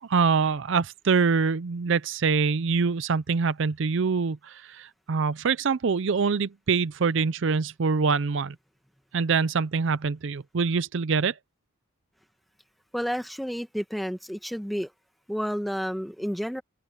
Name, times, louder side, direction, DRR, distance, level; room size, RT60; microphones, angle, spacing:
voice 1, 0.0-8.6 9.1-11.4, right 5 dB, 60° right, 0.5 m, -25 dB
voice 2, 12.9-14.9 15.3-16.6, equal, ahead, 1.1 m, -30 dB
open air
head